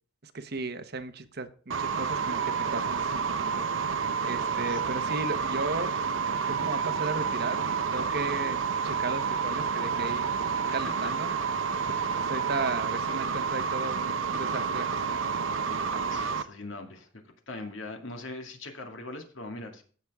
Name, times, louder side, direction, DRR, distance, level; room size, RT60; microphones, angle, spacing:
voice 1, 0.2-2.4 2.7-3.7 4.2-5.9 6.5-7.6 7.9-8.6 8.8-10.3 10.7-11.3 12.1-15.2, right 3 dB, 50° right, 9 dB, 1.1 m, -35 dB
sound 1, 1.7-16.4, right 6 dB, 75° right, 0.8 m, -29 dB
voice 2, 10.7-11.1 11.8-12.2 15.7-19.8, left 2 dB, 70° left, 4 dB, 2.4 m, -42 dB
16.5 x 6.3 x 3.6 m, 0.41 s
head